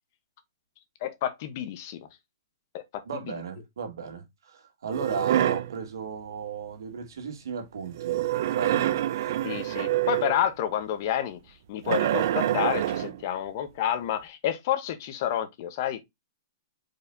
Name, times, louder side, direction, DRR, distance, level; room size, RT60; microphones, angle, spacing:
voice 1, 1.0-2.0 2.7-3.0 9.4-11.4 11.7-16.0, left 10 dB, 40° left, 1.0 m, -29 dB
voice 2, 3.1-8.2 8.5-8.9 9.2-9.4, right 6 dB, 85° right, 2.0 m, -35 dB
sound 1, 4.9-5.8 7.9-10.5 11.9-13.2, right 12 dB, 50° right, 0.5 m, -26 dB
4.8 x 4.1 x 2.7 m
hypercardioid pair, 160°, 2 cm